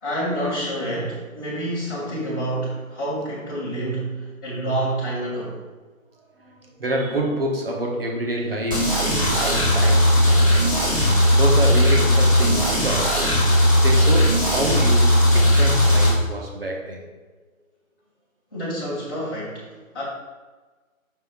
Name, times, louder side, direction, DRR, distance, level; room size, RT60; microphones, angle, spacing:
voice 1, 0.0-5.6 18.5-20.0, right 1 dB, 15° left, -12 dB, 1.2 m, -28 dB
voice 2, 6.4-10.6 11.3-13.4 13.8-17.1, right 1 dB, 40° right, 0 dB, 1.1 m, -27 dB
sound 1, 8.7-16.1, equal, 15° right, 0.9 m, -17 dB
5.6 x 3.5 x 4.8 m, 1.3 s
figure-of-eight pair, 165°, 42 cm